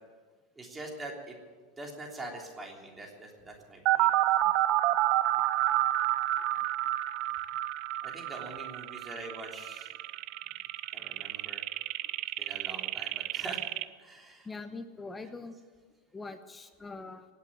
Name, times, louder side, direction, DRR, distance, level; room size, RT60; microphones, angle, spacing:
voice 1, 0.5-1.4 1.8-4.1 8.0-9.9 10.9-11.6 12.4-13.6 14.0-14.5, right 2 dB, 15° right, 0 dB, 3.3 m, -43 dB
sound 1, 3.9-13.8, right 14 dB, 55° right, 0.6 m, -29 dB
voice 2, 14.4-15.5 16.1-17.3, left 3 dB, 15° left, 9 dB, 1.1 m, -42 dB
18.5 x 8.3 x 8.8 m, 1.4 s
supercardioid pair, 120°, 0 cm